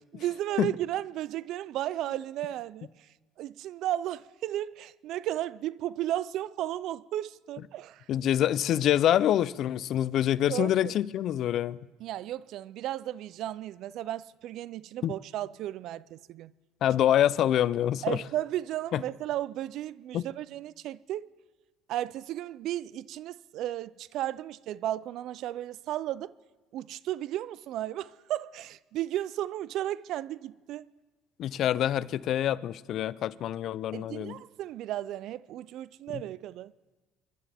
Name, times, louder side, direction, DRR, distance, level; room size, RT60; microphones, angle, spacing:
voice 1, 0.1-2.9 3.4-8.0 10.5-10.9 12.0-16.5 18.0-21.3 21.9-26.3 26.7-30.9 33.9-36.7, right 13 dB, 65° right, 0.4 m, -34 dB
voice 2, 8.1-11.8 15.0-15.1 16.8-18.2 18.9-19.0 20.1-20.2 31.4-34.4 36.1-36.2, left 11 dB, 55° left, 0.5 m, -26 dB
29.5 x 11.5 x 3.5 m
supercardioid pair, 105°, 0 cm